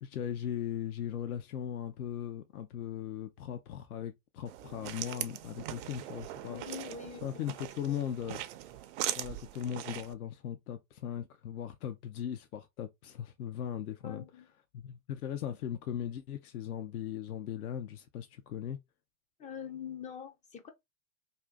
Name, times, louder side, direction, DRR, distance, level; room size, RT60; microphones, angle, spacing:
voice 1, 0.0-6.6 7.2-8.4 9.2-14.2 14.7-18.8, left 9 dB, 80° left, 0.5 m, -38 dB
sound 1, 4.5-10.1, right 13 dB, 55° right, 0.5 m, -40 dB
voice 2, 6.5-7.3 14.0-14.4 19.4-20.7, left 8 dB, 20° left, 0.3 m, -43 dB
2.7 x 2.5 x 3.4 m
hypercardioid pair, 80°, 43 cm